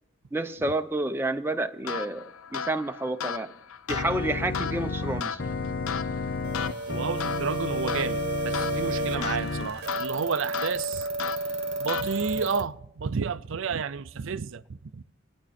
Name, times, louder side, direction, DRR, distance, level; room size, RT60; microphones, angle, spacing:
voice 1, 0.3-2.2 2.5-3.5 3.9-5.4, right 2 dB, 10° right, 0.6 m, -29 dB
sound 1, 1.8-12.5, left 7 dB, 90° left, 0.6 m, -36 dB
Organ, 3.9-9.7, left 3 dB, 55° left, 0.7 m, -32 dB
sound 2, 6.4-12.6, right 2 dB, 50° right, 1.0 m, -32 dB
voice 2, 6.9-11.1 11.8-15.0, right 6 dB, 65° right, 0.5 m, -31 dB
25.5 x 9.3 x 4.2 m
head